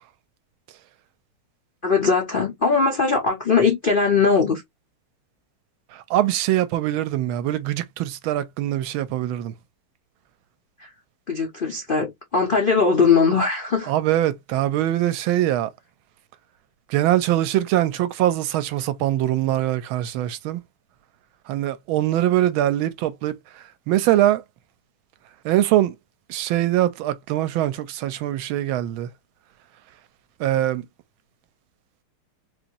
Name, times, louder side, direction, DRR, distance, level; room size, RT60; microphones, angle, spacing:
voice 1, 1.8-4.6 10.8-10.9 11.3-13.9, left 5 dB, 60° left, 0.5 m, -20 dB
voice 2, 6.1-9.5 13.9-15.7 16.9-20.6 21.5-23.3 23.9-24.4 25.4-25.9 26.3-29.1 30.4-30.8, right 13 dB, 75° right, 1.4 m, -22 dB
4.2 x 2.6 x 2.9 m
omnidirectional pair, 2.3 m